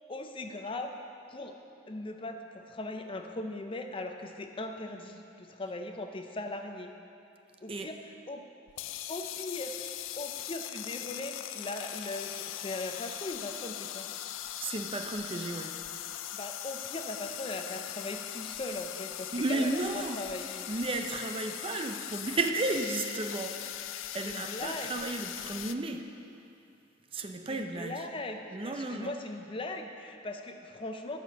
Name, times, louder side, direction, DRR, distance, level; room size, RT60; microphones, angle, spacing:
voice 1, 0.1-1.0 1.3-1.6 1.9-6.9 7.6-8.4 9.1-9.7 10.2-14.1 16.3-20.7 24.2-24.9 27.5-31.2, left 2 dB, 25° left, 5 dB, 0.5 m, -39 dB
sound 1, 8.7-25.7, left 12 dB, 85° left, 0.4 m, -40 dB
voice 2, 14.6-15.8 19.3-20.2 20.7-26.1 27.1-28.1 28.5-29.1, right 2 dB, 30° right, 5 dB, 0.5 m, -33 dB
11.5 x 5.1 x 6.7 m, 2.6 s
head